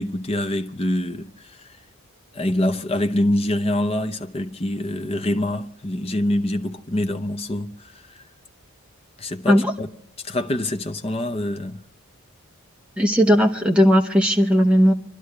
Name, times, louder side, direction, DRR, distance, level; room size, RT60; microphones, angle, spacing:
voice 1, 0.0-1.6 2.3-7.9 9.2-9.9 10.2-11.8, left 1 dB, 25° left, 0.7 m, -25 dB
voice 2, 13.0-14.9, equal, 5° right, 0.9 m, -17 dB
29.0 x 11.5 x 3.3 m
head